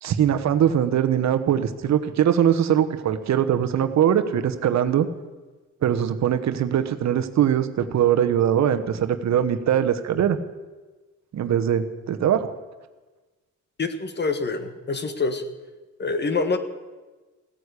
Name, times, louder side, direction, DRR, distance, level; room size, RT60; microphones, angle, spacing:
voice 1, 0.0-5.1 5.8-10.4 11.3-12.5, right 9 dB, 65° right, 10 dB, 1.2 m, -21 dB
voice 2, 13.8-15.4 16.0-16.6, left 3 dB, 35° left, 9 dB, 1.6 m, -26 dB
15.5 x 9.7 x 8.3 m, 1.2 s
cardioid pair, 90°, 30 cm